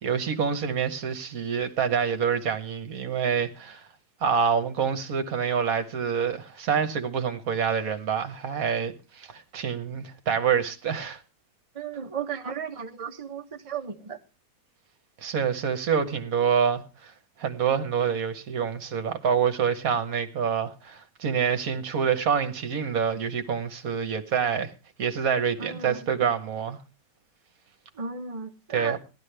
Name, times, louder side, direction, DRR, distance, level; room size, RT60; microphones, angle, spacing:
voice 1, 0.0-3.9 4.2-11.2 15.2-17.1 17.4-24.7 25.0-26.8 28.7-29.0, right 7 dB, 60° right, 1.4 m, -26 dB
voice 2, 11.7-14.2 25.6-26.0 27.9-29.0, right 6 dB, 30° right, 0.6 m, -35 dB
16.0 x 11.5 x 3.3 m
omnidirectional pair, 1.9 m